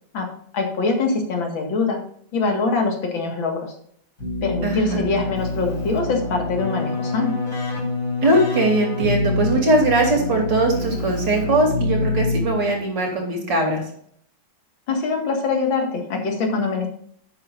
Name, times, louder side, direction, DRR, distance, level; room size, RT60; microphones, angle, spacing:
voice 1, 0.1-2.0 2.3-3.7 4.4-7.3 14.9-16.9, left 4 dB, 75° left, 3 dB, 2.6 m, -23 dB
Keyboard (musical), 4.2-12.9, left 2 dB, 50° left, 4.4 m, -26 dB
voice 2, 4.6-5.1 8.2-13.8, right 2 dB, 60° right, 0 dB, 3.5 m, -20 dB
11.0 x 8.8 x 2.5 m, 0.63 s
omnidirectional pair, 2.1 m